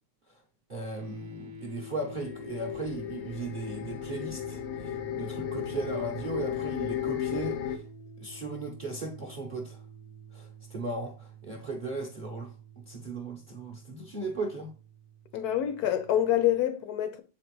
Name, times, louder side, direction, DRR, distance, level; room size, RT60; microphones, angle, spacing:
voice 1, 0.7-7.8 8.2-9.8 10.3-12.5 12.9-14.7, right 2 dB, 45° right, 0.6 m, -37 dB
sound 1, 0.9-16.2, right 1 dB, 70° right, 1.1 m, -48 dB
sound 2, 2.2-7.8, left 10 dB, 90° left, 1.5 m, -35 dB
voice 2, 15.3-17.2, left 11 dB, 70° left, 1.1 m, -26 dB
7.3 x 4.3 x 3.1 m
omnidirectional pair, 1.8 m